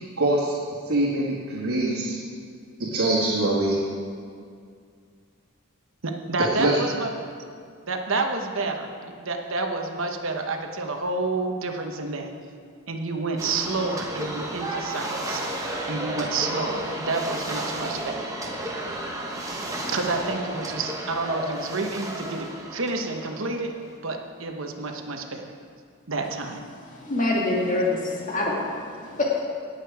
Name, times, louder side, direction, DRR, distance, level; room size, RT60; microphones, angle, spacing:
voice 1, 0.2-0.6 0.9-2.2 2.8-3.8 6.6-6.8, right 2 dB, 80° right, -6 dB, 1.9 m, -23 dB
voice 2, 6.0-7.1 7.9-12.3 12.9-15.4 15.8-18.3 19.9-23.7 24.0-25.4 26.1-26.6, right 3 dB, 65° right, 4 dB, 1.1 m, -29 dB
sound 1, 13.4-23.8, right 1 dB, 15° right, 1.2 m, -32 dB
voice 3, 26.9-29.4, left 2 dB, 40° left, -3 dB, 1.7 m, -25 dB
17.5 x 6.7 x 4.8 m, 2.2 s
head